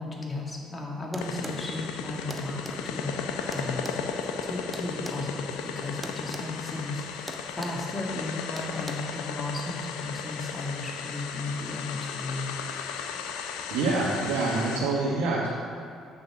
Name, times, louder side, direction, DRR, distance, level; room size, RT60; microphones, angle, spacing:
voice 1, 0.0-3.2 3.4-4.0 4.4-12.5, left 2 dB, 30° left, -1 dB, 2.1 m, -35 dB
sound 1, 1.1-1.6 2.3-2.8 3.5-5.2 6.0-6.5 6.7-6.9 7.3-7.8 8.6-8.9, right 1 dB, 15° right, 1.0 m, -40 dB
sound 2, 1.2-14.8, left 6 dB, 85° left, 0.6 m, -35 dB
voice 2, 13.7-15.5, right 3 dB, 80° right, -5 dB, 1.3 m, -26 dB
7.8 x 6.5 x 6.1 m, 2.4 s
supercardioid pair, 60°, 0 cm